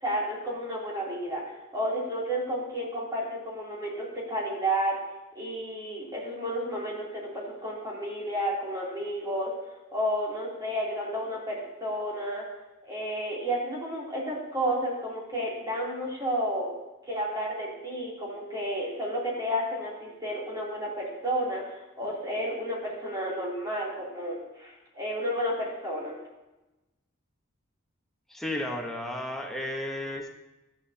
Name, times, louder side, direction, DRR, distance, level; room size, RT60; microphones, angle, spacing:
voice 1, 0.0-1.4 1.7-5.0 5.3-9.5 9.9-12.4 12.8-16.7 17.1-26.1, equal, 20° right, -5 dB, 3.1 m, -31 dB
voice 2, 28.3-30.3, left 1 dB, ahead, 0 dB, 1.1 m, -33 dB
13.0 x 10.5 x 2.9 m, 1.0 s
head